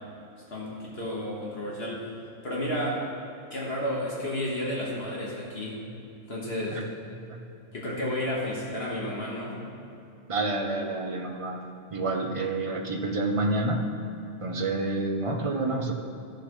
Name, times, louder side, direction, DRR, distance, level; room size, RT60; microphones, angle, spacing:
voice 1, 0.5-2.0 2.4-3.0 3.5-5.8 6.3-6.8 7.7-9.6, left 1 dB, 50° left, -5 dB, 1.8 m, -31 dB
voice 2, 10.3-11.6 11.9-13.9 14.4-15.9, right 2 dB, 30° right, 2 dB, 0.7 m, -28 dB
14.5 x 6.7 x 3.2 m, 2.7 s
omnidirectional pair, 1.3 m